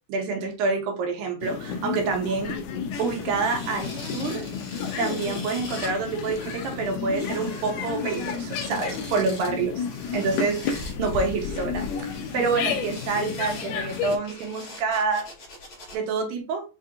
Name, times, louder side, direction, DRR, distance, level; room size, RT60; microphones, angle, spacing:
voice 1, 0.1-2.6 3.0-4.4 5.0-9.8 10.1-15.3 15.9-16.6, right 4 dB, 80° right, 3 dB, 2.4 m, -27 dB
sound 1, 1.4-14.2, left 6 dB, 80° left, 1.9 m, -32 dB
sound 2, 2.9-16.0, left 2 dB, 60° left, 1.5 m, -43 dB
5.7 x 2.7 x 2.4 m, 0.32 s
omnidirectional pair, 4.2 m